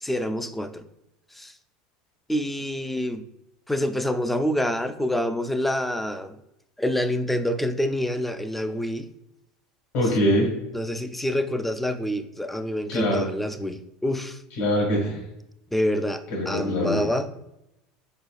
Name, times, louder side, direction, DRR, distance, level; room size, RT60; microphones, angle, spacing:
voice 1, 0.0-0.8 1.3-1.5 2.3-3.2 3.7-6.4 6.8-9.1 10.7-14.4 15.7-17.4, left 1 dB, 5° left, 9 dB, 0.3 m, -27 dB
voice 2, 9.9-10.5 12.9-13.3 14.6-15.2 16.3-17.0, equal, 60° left, -3 dB, 1.5 m, -23 dB
4.3 x 4.1 x 2.3 m, 0.86 s
supercardioid pair, 135°, 3 cm